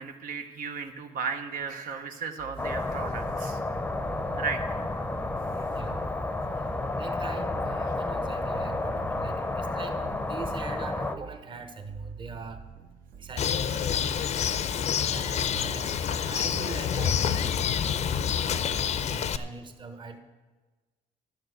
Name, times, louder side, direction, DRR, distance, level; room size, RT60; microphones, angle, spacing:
voice 1, 0.0-3.6 4.4-4.6, right 5 dB, 75° right, 5 dB, 0.9 m, -35 dB
sound 1, 2.4-18.3, right 8 dB, 50° right, 0.6 m, -48 dB
sound 2, 2.6-11.2, left 2 dB, 10° left, 0.6 m, -31 dB
voice 2, 5.5-6.0 7.0-12.6 13.2-14.3 15.0-18.1 18.5-20.2, right 4 dB, 35° right, 7 dB, 1.1 m, -42 dB
Bird, 13.4-19.4, left 8 dB, 50° left, 0.5 m, -27 dB
11.5 x 6.7 x 7.9 m, 1.3 s
cardioid pair, 140°, 14 cm